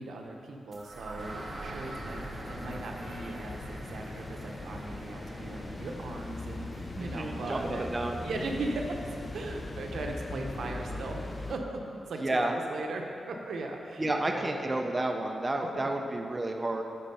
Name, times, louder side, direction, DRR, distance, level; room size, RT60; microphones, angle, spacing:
voice 1, 0.0-2.2 2.5-14.8 15.7-15.9, right 2 dB, 80° right, 2 dB, 0.8 m, -38 dB
sound 1, 0.7-8.7, right 2 dB, 40° right, 0.9 m, -46 dB
sound 2, 1.2-11.6, left 2 dB, 30° left, 0.5 m, -40 dB
voice 2, 7.0-8.2 12.2-12.5 14.0-16.8, right 2 dB, 20° right, 2 dB, 0.5 m, -31 dB
9.9 x 4.3 x 5.4 m, 2.6 s
wide cardioid pair, 125°, 0 cm